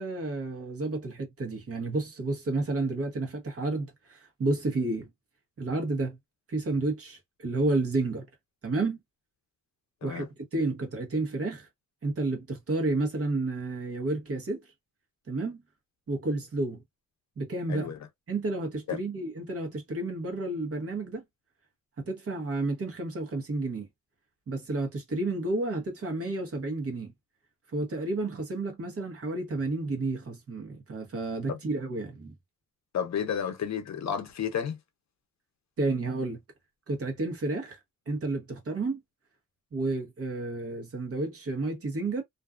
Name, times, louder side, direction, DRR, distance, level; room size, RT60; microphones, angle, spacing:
voice 1, 0.0-5.1 5.6-6.2 6.5-8.3 8.6-9.0 10.0-10.3 10.5-11.7 12.0-14.6 15.3-15.6 16.1-16.8 17.4-17.9 18.3-21.2 22.0-23.9 24.5-27.1 27.7-32.3 35.8-36.4 36.9-37.8 38.1-39.0 39.7-42.2, right 2 dB, 45° right, 1.0 m, -31 dB
voice 2, 17.7-18.0 18.9-19.0 31.5-31.6 32.9-34.8, left 8 dB, 55° left, 0.6 m, -31 dB
2.5 x 2.3 x 2.3 m
wide cardioid pair, 160°, 32 cm